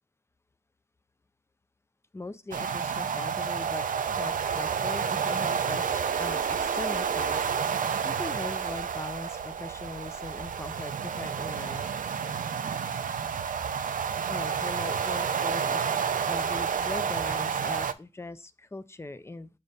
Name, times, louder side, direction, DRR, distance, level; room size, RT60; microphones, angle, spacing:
voice 1, 2.1-11.9 14.3-15.9 16.2-19.5, left 2 dB, 20° left, 0.4 m, -40 dB
sound 1, 2.5-17.9, right 7 dB, 85° right, 0.4 m, -30 dB
7.0 x 2.6 x 5.3 m
wide cardioid pair, 100°, 13 cm